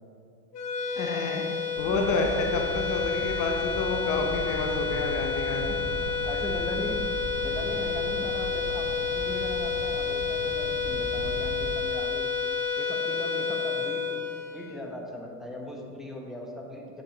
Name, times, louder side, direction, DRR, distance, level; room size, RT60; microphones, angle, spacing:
sound 1, 0.5-15.1, left 6 dB, 80° left, 0.8 m, -30 dB
voice 1, 1.0-1.5 1.8-5.8, left 3 dB, 40° left, 2 dB, 0.8 m, -29 dB
sound 2, 1.7-11.7, right 2 dB, 40° right, 1.5 m, -38 dB
voice 2, 1.9-2.3 6.0-7.1 7.4-12.3 12.8-14.1 14.5-17.0, left 1 dB, ahead, -1 dB, 1.0 m, -38 dB
7.9 x 6.7 x 2.9 m, 2.4 s
hypercardioid pair, 70°, 47 cm